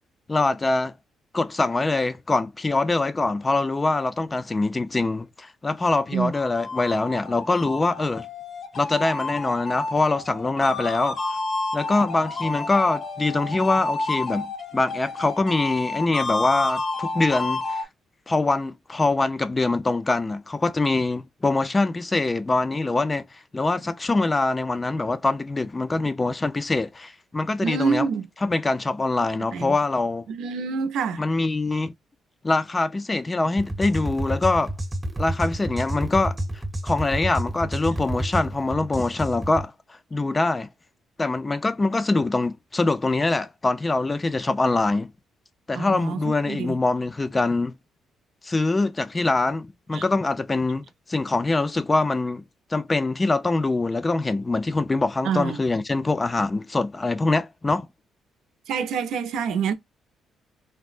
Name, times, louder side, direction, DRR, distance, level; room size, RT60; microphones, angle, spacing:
voice 1, 0.3-0.9 1.3-8.3 8.7-11.4 11.7-17.9 18.3-28.1 28.4-30.3 31.2-31.9 32.4-34.7 35.2-36.4 36.8-39.7 40.1-40.7 41.2-45.1 45.7-47.8 48.4-52.4 52.7-57.9, left 3 dB, 25° left, 0.4 m, -24 dB
sound 1, 6.1-17.8, left 3 dB, 50° left, 0.7 m, -30 dB
voice 2, 27.6-28.3 29.5-29.8 30.3-31.2 45.7-46.2 46.5-46.8 49.9-50.0 55.2-55.6 58.7-59.7, right 6 dB, 80° right, 0.6 m, -26 dB
sound 2, 33.6-39.7, right 1 dB, 15° right, 0.8 m, -30 dB
3.4 x 2.0 x 2.4 m
cardioid pair, 90°, 0 cm